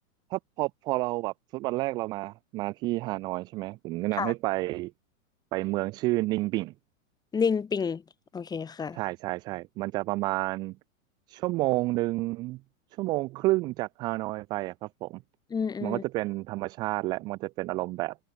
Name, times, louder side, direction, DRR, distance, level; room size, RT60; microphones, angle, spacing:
voice 1, 0.3-4.9 5.5-6.7 8.9-10.8 11.3-12.6 13.0-15.2 15.8-18.2, right 20 dB, 10° right, 0.5 m, -30 dB
voice 2, 7.3-8.0 8.3-9.0 15.5-16.0, left 6 dB, 10° left, 2.4 m, -29 dB
supercardioid pair, 170°, 43 cm